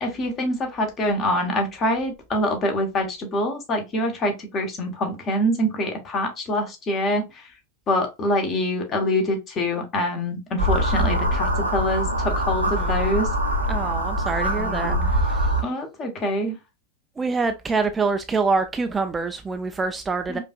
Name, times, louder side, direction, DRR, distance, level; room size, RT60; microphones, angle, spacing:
voice 1, 0.0-7.4 7.9-13.3 14.5-15.1 15.6-16.5 20.3-20.4, left 1 dB, 30° left, 1.0 m, -25 dB
sound 1, 10.6-15.6, right 1 dB, 85° right, 0.7 m, -23 dB
voice 2, 13.7-15.0 15.3-15.5 17.2-20.4, right 4 dB, 15° right, 0.3 m, -25 dB
5.0 x 2.5 x 2.3 m
figure-of-eight pair, 90°, 0 cm